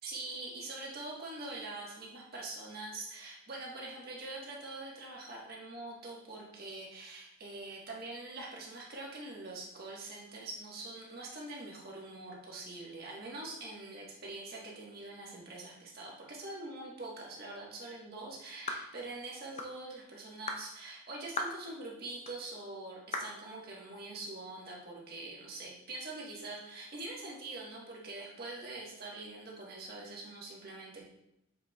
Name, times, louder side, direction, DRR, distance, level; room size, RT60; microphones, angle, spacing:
voice 1, 0.0-31.0, right 2 dB, 50° right, -3 dB, 1.5 m, -44 dB
sound 1, 18.7-18.9 19.6-19.8 20.5-20.7 21.4-21.6 22.3-22.4 23.1-23.4, left 3 dB, 35° left, 0.6 m, -37 dB
7.7 x 5.2 x 2.4 m, 0.81 s
head